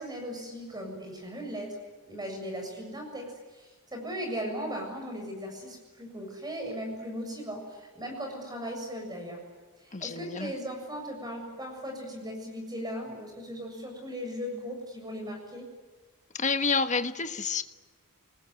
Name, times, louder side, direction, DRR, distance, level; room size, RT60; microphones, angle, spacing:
voice 1, 0.0-1.8 2.1-9.4 9.8-15.7, equal, 20° right, 2 dB, 7.2 m, -38 dB
voice 2, 9.9-10.5 16.3-17.6, left 4 dB, 35° left, 9 dB, 1.3 m, -29 dB
27.5 x 20.5 x 9.7 m, 1.3 s
head